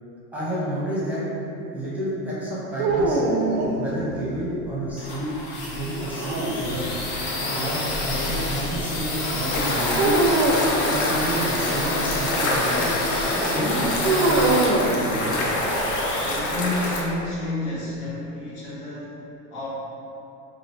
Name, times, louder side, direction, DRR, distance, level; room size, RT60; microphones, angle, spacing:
voice 1, 0.3-1.2 1.6-3.2 3.7-5.3 5.6-6.9 7.5-10.2 10.8-13.0 13.3-14.1, right 1 dB, 5° right, -9 dB, 0.7 m, -30 dB
sound 1, 2.8-4.4 6.0-7.1 10.0-10.8 14.0-15.7, right 2 dB, 80° right, 0.5 m, -23 dB
sound 2, 4.6-17.3, left 2 dB, 85° left, 0.7 m, -30 dB
sound 3, 9.5-17.0, left 1 dB, 40° left, 0.6 m, -26 dB
voice 2, 14.8-15.5 16.2-19.2 19.5-19.7, left 2 dB, 65° left, -9 dB, 1.4 m, -31 dB
2.8 x 2.5 x 3.1 m, 2.9 s
hypercardioid pair, 90°, 45 cm